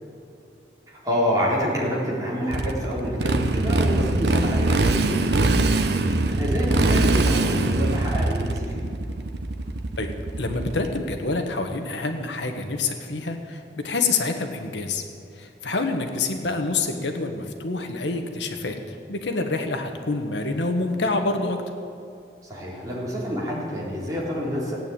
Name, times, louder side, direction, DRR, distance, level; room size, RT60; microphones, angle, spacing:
voice 1, 0.9-5.6 6.0-8.9 22.4-24.8, equal, 20° right, -5 dB, 3.9 m, -27 dB
Motorcycle, 2.5-11.1, right 2 dB, 70° right, 0.9 m, -22 dB
voice 2, 10.4-15.0 15.4-21.6, left 3 dB, 80° left, 5 dB, 1.5 m, -27 dB
17.5 x 9.2 x 8.9 m, 2.6 s
head